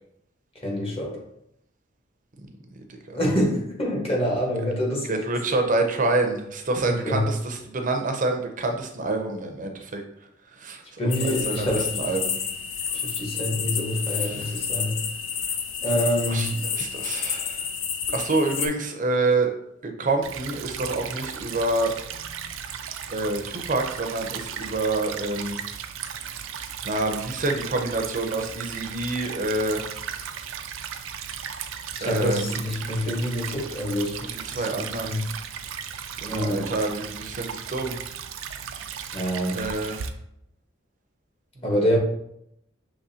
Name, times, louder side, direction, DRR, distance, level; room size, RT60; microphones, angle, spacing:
voice 1, 0.6-1.2 3.1-5.1 6.9-7.3 11.0-12.1 13.0-15.0 15.8-16.5 32.0-34.2 34.5-35.2 36.3-36.7 39.1-39.6 41.6-42.0, equal, 30° left, -2 dB, 1.3 m, -26 dB
voice 2, 5.1-10.0 10.5-10.8 11.2-12.4 14.1-14.4 15.9-16.0 16.3-17.7 18.1-19.5 19.8-21.9 23.1-25.6 26.8-29.8 32.0-32.6 34.2-35.2 36.2-38.0 39.5-40.1 41.6-42.0, right 2 dB, 45° right, 4 dB, 0.6 m, -27 dB
sound 1, 11.1-18.7, left 7 dB, 70° left, 0.5 m, -30 dB
Stream / Trickle dribble, 20.2-40.1, right 7 dB, 90° right, 0.4 m, -36 dB
6.2 x 3.1 x 2.8 m, 0.75 s
head